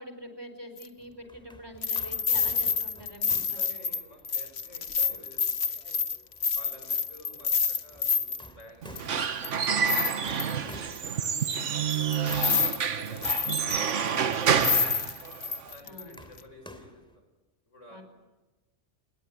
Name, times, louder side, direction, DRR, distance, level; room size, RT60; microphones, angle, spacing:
voice 1, 0.0-3.7 15.8-16.2 17.9-18.0, equal, 20° right, 7 dB, 4.4 m, -45 dB
sound 1, 0.8-0.9 1.8-8.5 9.0-9.1 9.4-10.7 11.5-11.6 12.1-12.8 13.1-13.9 14.3-14.4 14.6-16.0 16.4-16.5, left 6 dB, 60° left, 1.3 m, -28 dB
house construction, 1.0-17.2, equal, 5° left, 3.2 m, -52 dB
voice 2, 3.3-6.0 6.5-9.4 9.8-11.6 12.2-15.2 15.7-17.2 17.7-18.0, left 1 dB, 90° left, 4 dB, 7.3 m, -52 dB
Squeak / Wood, 8.8-15.7, right 7 dB, 80° right, 1.5 m, -28 dB
28.5 x 21.0 x 9.5 m, 1.2 s
omnidirectional pair, 1.2 m